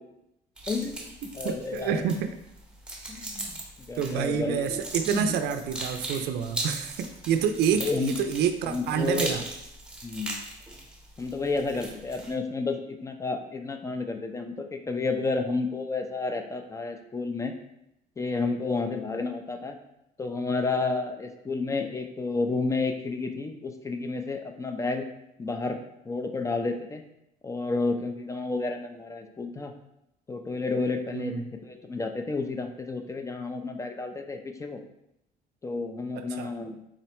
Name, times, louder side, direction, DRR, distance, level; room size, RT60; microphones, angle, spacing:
sound 1, 0.6-12.3, right 2 dB, 5° right, 0.8 m, -39 dB
voice 1, 0.7-1.1 1.3-2.0 3.1-3.6 3.9-4.8 5.1-5.4 7.8-8.1 8.6-9.4 10.0-10.4 11.2-17.5 18.2-19.8 20.2-25.1 25.4-25.8 26.1-27.0 27.4-29.7 30.3-34.8 35.6-36.8, left 3 dB, 20° left, 6 dB, 0.3 m, -31 dB
voice 2, 1.4-2.3 4.0-9.4 31.1-31.4 36.2-36.5, right 7 dB, 75° right, 8 dB, 0.4 m, -28 dB
3.7 x 2.1 x 4.3 m, 0.84 s
cardioid pair, 110°, 17 cm